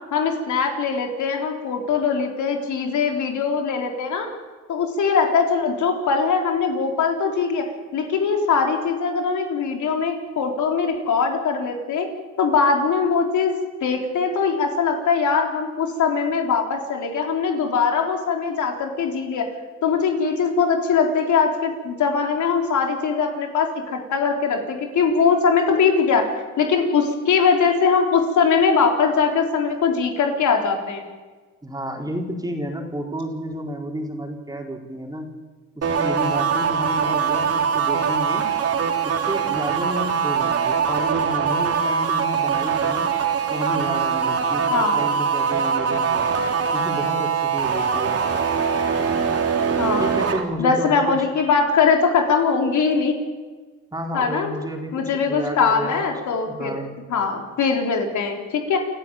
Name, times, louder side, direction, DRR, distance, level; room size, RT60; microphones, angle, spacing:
voice 1, 0.1-4.3 4.7-7.7 7.9-12.1 12.4-13.6 13.8-19.5 19.8-31.0 44.7-45.0 49.8-50.2 50.6-53.2 54.1-54.5 54.9-56.7 57.1-58.8, left 5 dB, 75° left, 3 dB, 4.2 m, -21 dB
voice 2, 31.6-35.3 35.7-38.4 39.0-43.1 43.5-46.3 46.7-48.2 50.0-51.3 53.9-56.1 56.4-57.0, equal, 10° right, 1 dB, 4.4 m, -31 dB
sound 1, 35.8-50.4, right 6 dB, 50° right, 3.3 m, -22 dB
28.0 x 13.5 x 9.0 m, 1.4 s
cardioid pair, 90°, 30 cm